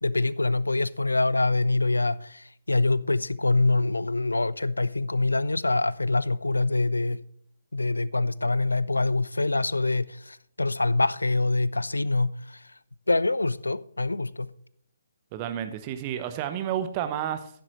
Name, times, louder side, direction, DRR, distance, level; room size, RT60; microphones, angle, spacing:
voice 1, 0.0-7.2 7.7-12.6 13.1-14.5, left 2 dB, 75° left, 0.4 m, -25 dB
voice 2, 15.3-17.5, right 10 dB, 25° right, 0.9 m, -30 dB
11.5 x 10.5 x 3.1 m
figure-of-eight pair, 135°, 0 cm